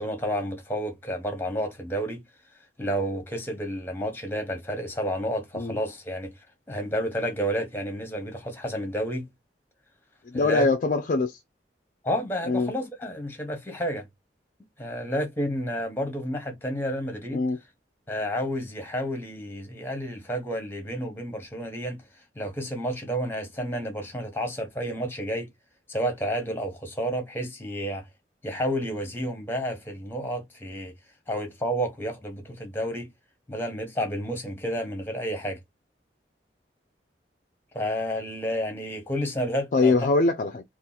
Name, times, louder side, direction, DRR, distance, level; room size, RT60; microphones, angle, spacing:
voice 1, 0.0-2.2 2.8-6.3 6.7-9.3 10.3-10.7 12.0-14.1 14.8-17.4 18.1-22.0 22.4-25.5 25.9-28.1 28.4-30.9 31.3-33.1 33.5-35.6 37.7-39.9, equal, 10° left, 0.9 m, -30 dB
voice 2, 10.3-11.4 12.5-12.7 17.3-17.6 39.7-40.6, left 3 dB, 45° left, 0.4 m, -23 dB
2.8 x 2.5 x 3.8 m
head